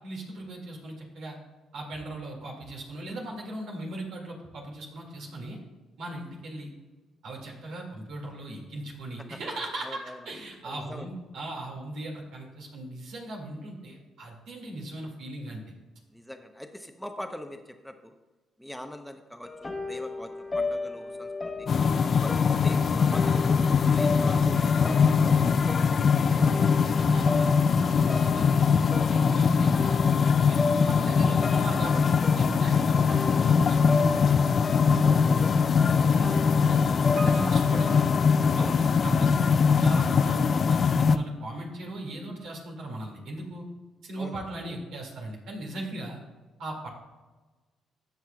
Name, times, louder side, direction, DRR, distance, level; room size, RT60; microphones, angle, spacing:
voice 1, 0.0-1.4 1.7-5.6 6.0-6.7 7.2-15.6 26.3-28.6 29.1-30.0 30.4-34.4 35.8-38.1 38.5-43.7 44.0-46.2 46.6-46.9, right 1 dB, 70° right, 0 dB, 2.1 m, -38 dB
voice 2, 9.8-10.3 10.6-11.1 16.1-18.1 18.6-21.7 22.1-25.8 35.0-35.5 38.6-38.8 44.2-44.4, left 1 dB, 5° left, 6 dB, 0.7 m, -42 dB
sound 1, 19.4-38.7, left 3 dB, 25° left, 1.2 m, -35 dB
sound 2, 21.7-41.2, left 6 dB, 50° left, 0.4 m, -22 dB
Piano, 37.2-39.2 39.5-39.6, right 3 dB, 50° right, 0.8 m, -43 dB
15.5 x 5.7 x 2.3 m, 1.2 s
supercardioid pair, 55°, 0 cm